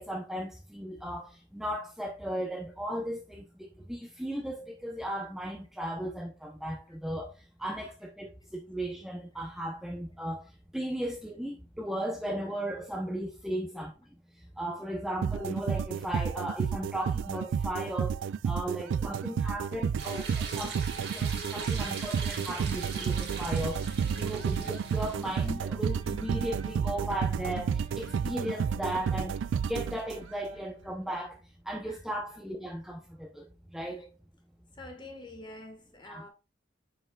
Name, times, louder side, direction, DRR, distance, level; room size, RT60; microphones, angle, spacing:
voice 1, 0.0-7.3 7.6-10.5 10.7-13.9 14.6-31.4 31.7-34.1 36.0-36.3, right 1 dB, ahead, 0.6 m, -36 dB
sound 1, 15.2-30.5, right 7 dB, 85° right, 0.3 m, -31 dB
sound 2, 20.0-25.5, right 4 dB, 60° right, 1.8 m, -40 dB
sound 3, 21.6-31.0, right 1 dB, 35° right, 1.8 m, -56 dB
voice 2, 34.8-36.3, left 2 dB, 25° left, 1.4 m, -46 dB
7.4 x 5.7 x 2.3 m
head